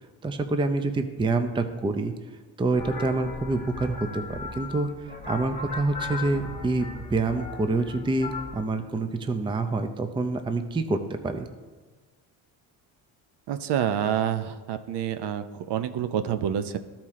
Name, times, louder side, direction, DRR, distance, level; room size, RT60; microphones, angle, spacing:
voice 1, 0.2-2.1 2.6-11.5, right 2 dB, 10° right, 7 dB, 0.5 m, -27 dB
sound 1, 2.8-8.6, left 3 dB, 20° left, 1.3 m, -37 dB
voice 2, 13.5-16.8, right 9 dB, 60° right, 10 dB, 0.7 m, -28 dB
13.0 x 4.4 x 3.7 m, 1.4 s
cardioid pair, 85°, 46 cm